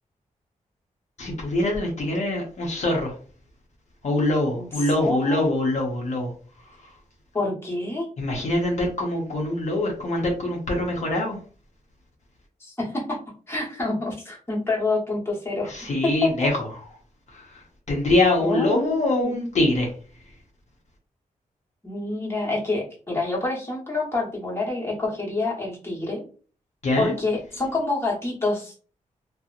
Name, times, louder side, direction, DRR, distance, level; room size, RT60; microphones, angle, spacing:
voice 1, 1.2-3.1 4.0-6.3 8.2-11.4 15.7-16.7 17.3-17.6 17.9-19.9 26.8-27.1, left 2 dB, 60° left, 0.7 m, -24 dB
voice 2, 4.9-5.4 7.3-8.1 12.6-13.2 13.5-15.7 16.2-16.3 18.4-19.3 21.8-26.2 27.0-28.7, left 2 dB, 20° left, 1.1 m, -27 dB
2.8 x 2.0 x 2.4 m
wide cardioid pair, 105°, 14 cm